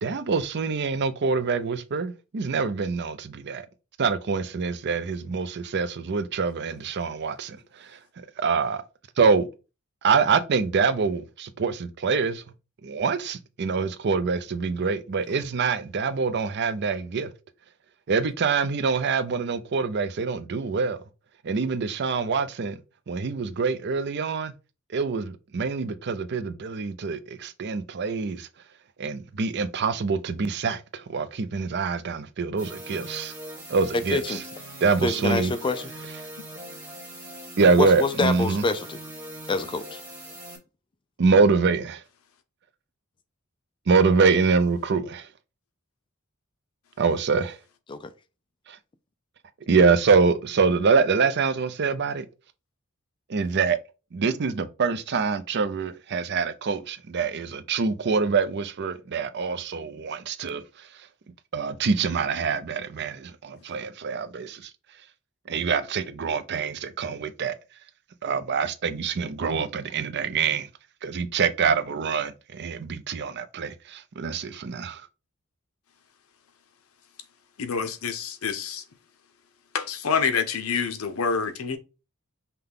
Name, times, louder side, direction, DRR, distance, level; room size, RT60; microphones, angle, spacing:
voice 1, 0.0-3.6 4.0-7.9 8.4-8.8 9.2-9.5 10.0-12.4 12.8-17.3 18.1-21.0 21.4-22.8 23.1-24.5 24.9-28.5 29.0-33.3 33.7-34.4 34.8-35.5 37.6-38.6 41.2-42.0 43.9-45.3 47.0-47.6 48.7-48.8 49.7-52.3 53.3-53.8 54.1-60.6 61.5-64.7 65.5-67.6 68.2-70.7 71.0-75.0, right 5 dB, 50° right, 0.5 m, -25 dB
sound 1, 32.6-40.6, right 1 dB, 10° right, 1.2 m, -41 dB
voice 2, 33.9-34.4 35.0-35.9 37.8-39.0 39.5-40.0 47.9-48.0, left 3 dB, 20° left, 0.3 m, -26 dB
voice 3, 77.6-78.8 79.7-81.8, left 6 dB, 80° left, 0.7 m, -27 dB
5.7 x 2.3 x 3.5 m
head